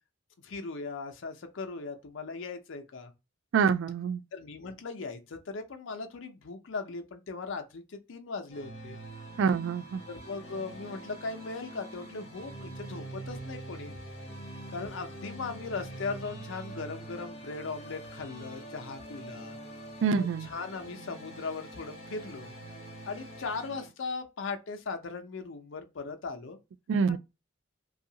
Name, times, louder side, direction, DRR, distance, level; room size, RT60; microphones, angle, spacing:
voice 1, 0.4-3.1 4.3-9.0 10.1-13.9 14.7-19.6 20.2-22.5 23.0-26.6 27.1-27.2, left 4 dB, 70° left, 0.5 m, -38 dB
voice 2, 3.5-4.2 9.4-10.0 20.0-20.5 26.9-27.2, right 6 dB, 65° right, 0.3 m, -26 dB
sound 1, 8.5-23.9, right 1 dB, 30° left, 0.9 m, -44 dB
2.7 x 2.4 x 2.7 m
head